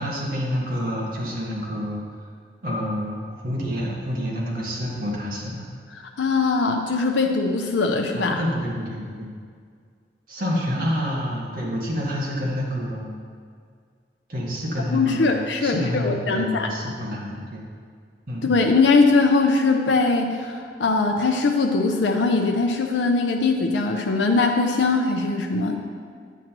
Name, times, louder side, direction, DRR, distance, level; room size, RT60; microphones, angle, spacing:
voice 1, 0.0-2.0 2.6-5.7 8.1-9.3 10.3-13.1 14.3-17.6 18.3-18.5, equal, 50° right, -4 dB, 1.6 m, -28 dB
voice 2, 6.2-8.4 14.9-16.7 18.4-25.8, left 3 dB, 80° left, 2 dB, 0.5 m, -21 dB
8.9 x 7.4 x 3.0 m, 2.1 s
head